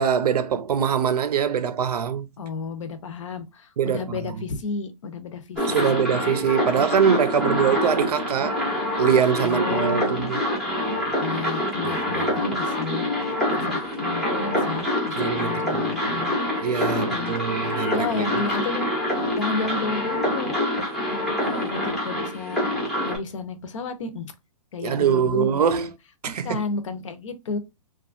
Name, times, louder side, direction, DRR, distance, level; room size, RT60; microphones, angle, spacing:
voice 1, 0.0-2.3 3.8-4.4 5.7-8.6 9.0-10.4 11.8-12.3 15.2-15.8 16.6-18.3 24.8-25.9 26.2-26.6, right 7 dB, 85° right, 0.6 m, -23 dB
voice 2, 2.4-6.1 7.4-7.8 9.4-10.2 11.2-13.1 13.5-16.4 17.0-17.4 17.9-18.9 19.4-20.5 21.1-22.6 23.0-24.3 24.7-25.9 26.3-27.6, left 4 dB, 55° left, 0.6 m, -32 dB
sound 1, 5.6-23.2, left 1 dB, ahead, 0.5 m, -26 dB
3.0 x 2.3 x 2.4 m
hypercardioid pair, 170°, 20 cm